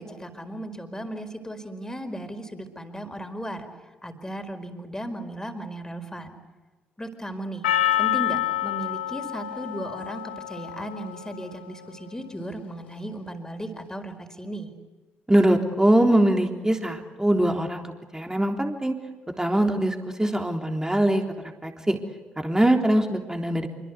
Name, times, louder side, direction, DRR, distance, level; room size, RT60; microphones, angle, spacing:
voice 1, 0.0-6.3 7.0-7.7 8.0-14.7, right 1 dB, 10° left, 6 dB, 4.9 m, -36 dB
Percussion, 7.6-11.9, left 13 dB, 85° left, 1.4 m, -28 dB
voice 2, 15.3-17.9 18.1-19.0 19.4-21.2 21.6-22.0 22.4-23.7, right 1 dB, 10° right, 3 dB, 3.6 m, -22 dB
26.5 x 24.5 x 8.3 m, 1.3 s
hypercardioid pair, 40°, 5 cm